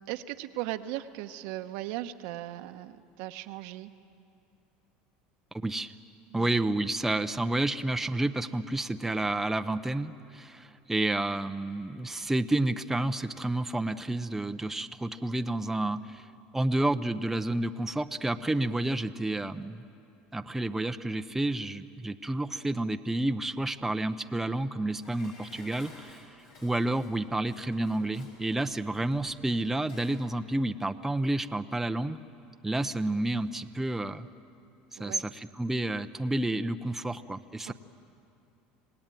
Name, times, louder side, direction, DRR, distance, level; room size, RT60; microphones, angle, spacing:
voice 1, 0.1-3.9 6.3-6.5 35.0-35.3 37.7-37.8, right 15 dB, 75° right, 8 dB, 1.0 m, -38 dB
voice 2, 5.5-5.9 6.3-16.2 16.5-19.8 20.3-26.3 26.6-32.2 32.6-34.3 35.0-37.7, right 2 dB, 10° right, 8 dB, 0.7 m, -30 dB
Dishes pots and pans, 25.0-30.3 30.6-30.7, left 3 dB, 80° left, 6.2 m, -54 dB
26.5 x 18.0 x 9.2 m, 2.6 s
supercardioid pair, 105°, 4 cm